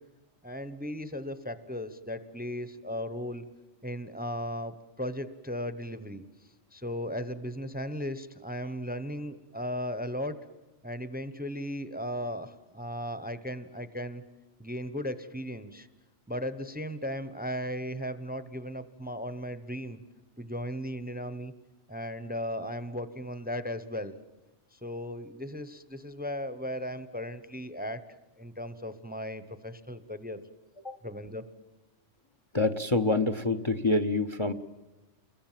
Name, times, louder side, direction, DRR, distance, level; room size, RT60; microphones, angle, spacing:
voice 1, 0.4-3.4 3.8-6.2 6.7-10.4 10.8-14.2 14.6-15.9 16.3-20.0 20.4-21.5 21.9-24.2 24.7-28.0 28.4-30.4 31.0-31.5, equal, 10° right, 12 dB, 0.9 m, -36 dB
voice 2, 32.5-34.5, left 2 dB, 25° left, 10 dB, 0.9 m, -26 dB
29.5 x 22.5 x 7.5 m, 1.1 s
omnidirectional pair, 1.3 m